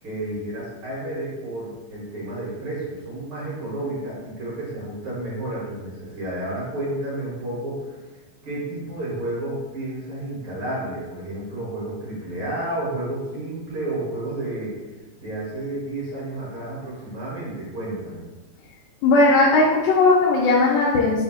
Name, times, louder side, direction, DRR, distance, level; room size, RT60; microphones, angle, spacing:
voice 1, 0.0-8.0 8.4-14.8 15.2-18.2, right 1 dB, 55° right, -7 dB, 1.7 m, -31 dB
voice 2, 19.0-21.2, left 3 dB, 80° left, -4 dB, 2.0 m, -17 dB
4.8 x 2.2 x 4.8 m, 1.1 s
omnidirectional pair, 3.5 m